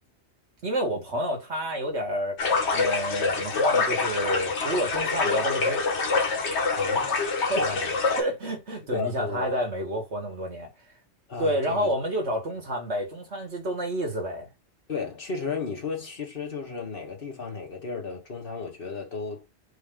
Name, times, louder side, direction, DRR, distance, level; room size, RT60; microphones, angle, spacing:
voice 1, 0.6-2.4 2.7-5.8 7.5-7.8 8.2-10.7 11.4-14.5, equal, 80° right, 2.0 m, -29 dB
sound 1, 2.4-8.2, left 4 dB, 80° left, 1.4 m, -25 dB
voice 2, 6.8-7.2 7.6-7.9 8.9-9.6 11.3-11.9 14.9-19.5, left 5 dB, 55° left, 1.6 m, -34 dB
4.7 x 2.9 x 3.6 m
omnidirectional pair, 1.1 m